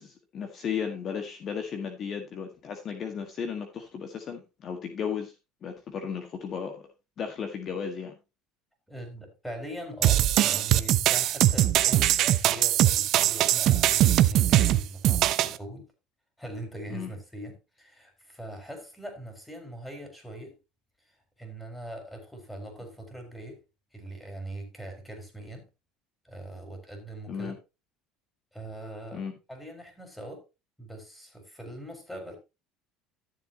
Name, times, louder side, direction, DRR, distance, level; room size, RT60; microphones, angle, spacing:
voice 1, 0.0-5.3 5.6-6.9 7.2-8.2 16.9-17.1 27.3-27.6 29.1-29.3, left 7 dB, 45° left, 1.7 m, -35 dB
voice 2, 8.9-15.9 16.4-20.6 21.1-23.6 23.9-25.7 26.2-27.6 28.5-30.4 30.8-32.4, right 1 dB, 5° left, 4.4 m, -41 dB
sound 1, 10.0-15.6, right 13 dB, 55° right, 0.7 m, -21 dB
13.0 x 7.5 x 2.9 m
supercardioid pair, 100°, 0 cm